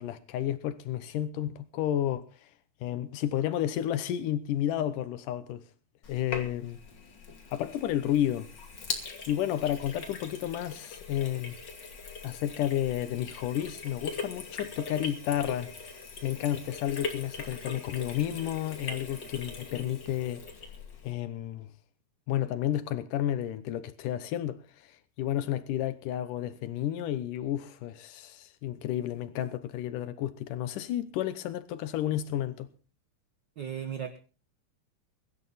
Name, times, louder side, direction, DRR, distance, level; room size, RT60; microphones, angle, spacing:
voice 1, 0.0-2.5 2.8-5.6 6.1-6.8 7.5-8.5 9.0-11.6 12.2-15.7 16.2-20.5 21.0-21.7 22.3-32.7, left 11 dB, 85° left, 2.6 m, -31 dB
Sink (filling or washing), 6.0-21.1, left 4 dB, 35° left, 2.9 m, -41 dB
voice 2, 33.6-34.2, right 9 dB, 50° right, 1.5 m, -36 dB
22.5 x 11.0 x 4.1 m
omnidirectional pair, 3.6 m